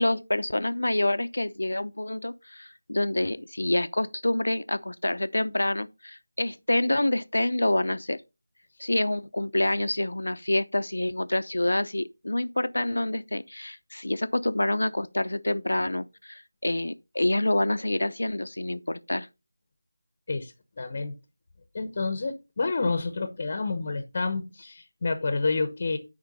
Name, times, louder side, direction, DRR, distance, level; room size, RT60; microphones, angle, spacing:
voice 1, 0.0-8.2 8.8-19.3, left 1 dB, 80° left, 0.7 m, -27 dB
voice 2, 20.3-21.1 21.7-26.0, left 3 dB, 30° left, 0.9 m, -29 dB
10.0 x 4.4 x 4.1 m
figure-of-eight pair, 170°, 0 cm